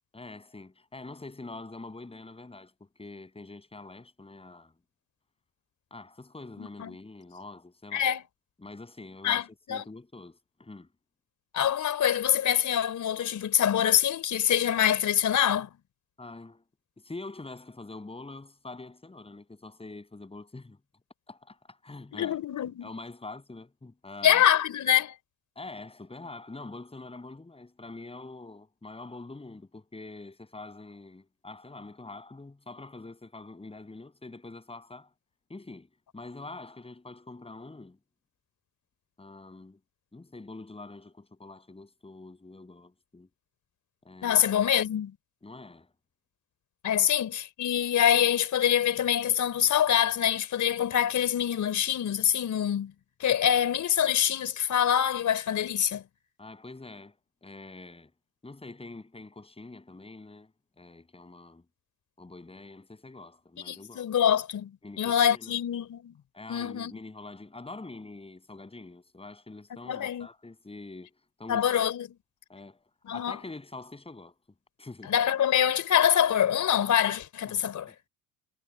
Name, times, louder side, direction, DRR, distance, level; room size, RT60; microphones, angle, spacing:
voice 1, 0.1-4.7 5.9-8.1 8.6-10.9 16.2-16.6 17.0-20.8 21.3-22.4 22.8-24.4 25.6-35.1 35.5-38.0 39.2-39.8 40.1-43.3 44.0-44.5 45.4-45.9 46.9-47.1 56.4-58.1 58.4-61.6 62.2-64.1 64.8-65.6 66.3-71.1 71.4-71.8 72.5-74.4 74.8-75.2 77.4-78.1, left 2 dB, 15° left, 7.7 m, -45 dB
voice 2, 6.6-7.0 7.9-8.2 9.2-9.4 9.7-9.8 11.5-15.7 22.1-22.9 24.2-25.2 44.2-45.2 46.8-52.9 53.2-56.0 63.7-66.2 66.5-67.0 69.8-70.3 71.5-72.1 73.1-73.4 75.0-77.9, left 9 dB, 45° left, 3.8 m, -25 dB
supercardioid pair, 80°, 40 cm